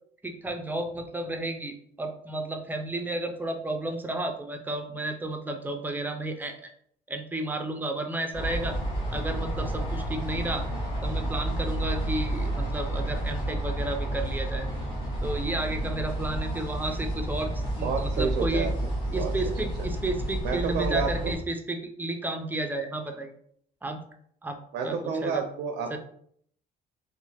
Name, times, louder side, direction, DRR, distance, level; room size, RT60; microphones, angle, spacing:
voice 1, 0.2-6.7 7.1-8.8 9.1-10.7 11.0-14.7 15.2-18.7 19.1-23.3 23.8-24.0 24.4-25.4 25.9-26.0, right 1 dB, 10° right, 4 dB, 0.4 m, -32 dB
sound 1, 8.3-21.4, right 1 dB, 30° left, 1.3 m, -30 dB
voice 2, 17.8-19.5 20.4-21.3 24.7-26.0, right 5 dB, 75° right, 5 dB, 0.4 m, -30 dB
2.8 x 2.1 x 2.7 m, 0.65 s
cardioid pair, 110°, 17 cm